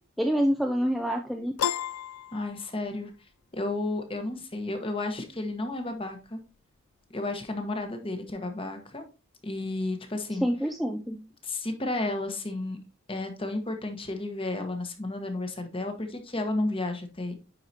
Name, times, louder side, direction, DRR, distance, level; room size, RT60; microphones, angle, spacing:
voice 1, 0.2-1.5 10.4-11.2, equal, ahead, 3 dB, 0.4 m, -26 dB
Piano, 1.6-3.1, left 10 dB, 75° left, 0.3 m, -32 dB
voice 2, 2.3-3.1 3.5-6.4 7.1-9.0 9.4-10.5 11.4-12.8 13.1-17.3, left 2 dB, 25° left, 5 dB, 1.2 m, -32 dB
9.7 x 4.7 x 2.8 m, 0.31 s
head